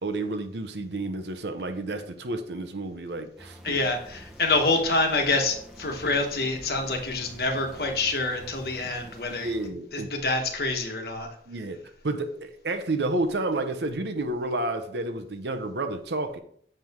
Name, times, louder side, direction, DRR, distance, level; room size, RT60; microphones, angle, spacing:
voice 1, 0.0-3.8 9.4-10.1 11.5-11.8 12.0-16.4, right 2 dB, 75° right, 7 dB, 0.8 m, -30 dB
sound 1, 3.4-9.7, equal, 5° right, 0.9 m, -47 dB
voice 2, 3.6-9.5 9.9-11.3, left 3 dB, 60° left, 4 dB, 1.2 m, -26 dB
7.6 x 4.6 x 3.6 m, 0.63 s
head